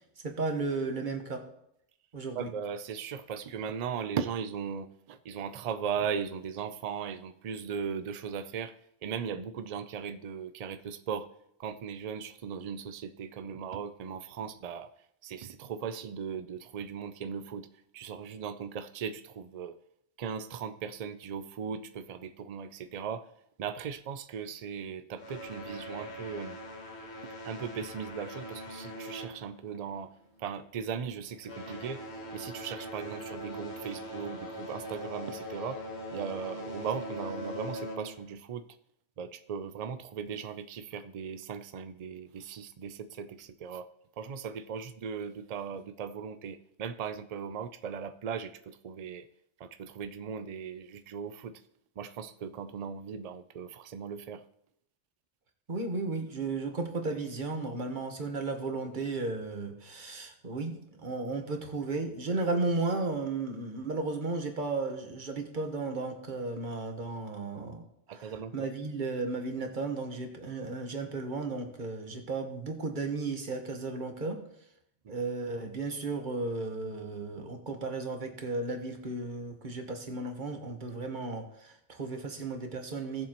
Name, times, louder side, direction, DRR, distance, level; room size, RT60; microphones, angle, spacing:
voice 1, 0.2-1.5 2.1-2.5 55.7-74.4 75.1-83.3, right 3 dB, 40° right, 4 dB, 1.3 m, -34 dB
voice 2, 2.4-8.7 9.0-11.3 11.6-14.9 15.2-17.7 17.9-19.7 20.2-23.3 23.6-26.6 27.4-30.1 30.4-32.0 32.3-35.8 36.1-38.7 39.2-43.8 44.2-49.3 49.6-51.6 52.0-54.4 68.1-68.7 75.0-75.2, right 7 dB, 70° right, 10 dB, 0.3 m, -38 dB
sound 1, 25.2-30.1 30.4-30.7 31.3-38.3, equal, 60° left, 1.6 m, -41 dB
17.0 x 7.2 x 3.0 m, 0.75 s
omnidirectional pair, 1.2 m